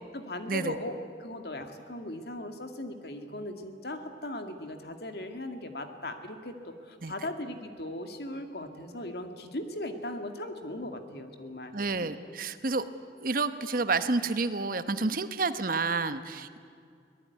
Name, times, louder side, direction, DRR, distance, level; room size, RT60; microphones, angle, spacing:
voice 1, 0.1-11.7, left 1 dB, 60° left, 6 dB, 2.1 m, -38 dB
voice 2, 11.7-12.8 13.2-16.6, right 3 dB, 50° right, 11 dB, 1.0 m, -29 dB
24.0 x 18.5 x 9.5 m, 2.3 s
head